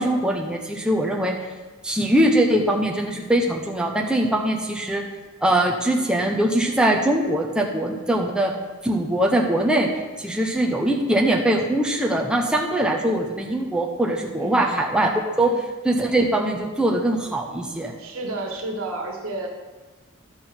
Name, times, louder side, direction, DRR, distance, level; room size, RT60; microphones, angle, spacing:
voice 1, 0.0-1.3 1.8-5.0 5.4-8.5 8.8-9.9 10.2-15.1 15.4-15.5 15.8-17.9, right 1 dB, 5° right, 0 dB, 0.8 m, -22 dB
voice 2, 14.4-14.8 15.4-15.5 18.0-19.5, right 2 dB, 75° right, 1 dB, 1.6 m, -31 dB
12.0 x 6.1 x 4.4 m, 1.3 s
head